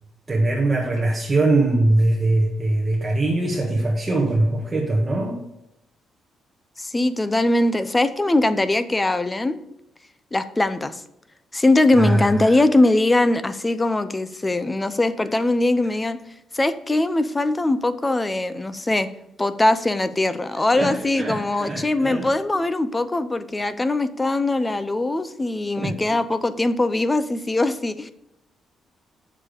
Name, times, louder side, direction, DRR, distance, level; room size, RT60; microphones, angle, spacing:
voice 1, 0.3-5.4 11.9-12.5 20.7-22.3 25.8-25.9, right 2 dB, 25° right, -2 dB, 1.5 m, -22 dB
voice 2, 6.8-9.6 10.3-11.0 11.5-16.2 16.5-19.1 19.4-28.1, left 2 dB, 20° left, 13 dB, 0.6 m, -21 dB
7.3 x 6.9 x 5.1 m, 0.82 s
cardioid pair, 90°, 0 cm